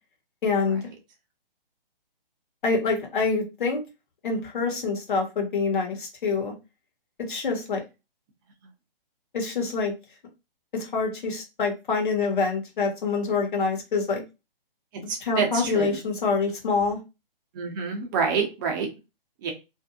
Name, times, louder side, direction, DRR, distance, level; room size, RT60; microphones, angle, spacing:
voice 1, 0.4-0.9 2.6-3.8 4.2-6.5 7.3-7.8 9.3-9.9 10.7-14.2 15.0-17.0, left 4 dB, 60° left, 2 dB, 1.1 m, -26 dB
voice 2, 15.1-16.0 17.5-18.9 19.4-19.5, right 5 dB, 20° right, 2 dB, 0.6 m, -27 dB
2.5 x 2.3 x 2.6 m, 0.27 s
hypercardioid pair, 140°, 29 cm